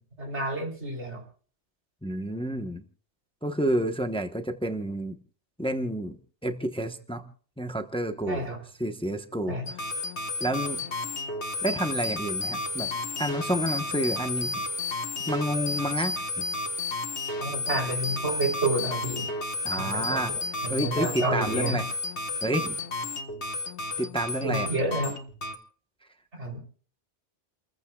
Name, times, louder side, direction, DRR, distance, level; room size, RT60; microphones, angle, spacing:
voice 1, 0.2-1.2 8.3-8.6 9.5-9.7 17.4-19.3 19.8-21.8 24.4-25.1 26.4-26.6, right 2 dB, 85° right, 1 dB, 4.0 m, -30 dB
voice 2, 2.0-2.8 3.4-5.2 5.6-6.2 6.4-7.3 7.6-8.4 8.8-9.6 10.4-10.8 11.6-12.9 13.2-14.7 15.3-16.4 19.6-20.3 20.7-21.9 22.4-22.8 24.0-24.7, right 1 dB, 5° left, 6 dB, 1.0 m, -29 dB
sound 1, 9.7-25.6, left 3 dB, 80° left, 1.7 m, -32 dB
30.0 x 15.0 x 2.4 m, 0.43 s
omnidirectional pair, 1.1 m